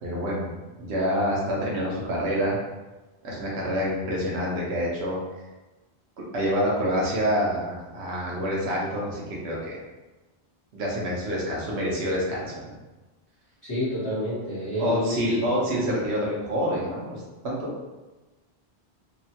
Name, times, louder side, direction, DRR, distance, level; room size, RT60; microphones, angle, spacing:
voice 1, 0.0-0.5 0.8-2.6 3.2-5.2 6.3-9.7 10.7-12.8 14.8-17.7, equal, 85° right, -4 dB, 1.0 m, -27 dB
voice 2, 13.6-15.5, equal, 25° left, -13 dB, 0.8 m, -29 dB
2.9 x 2.1 x 2.8 m, 1.2 s
omnidirectional pair, 1.1 m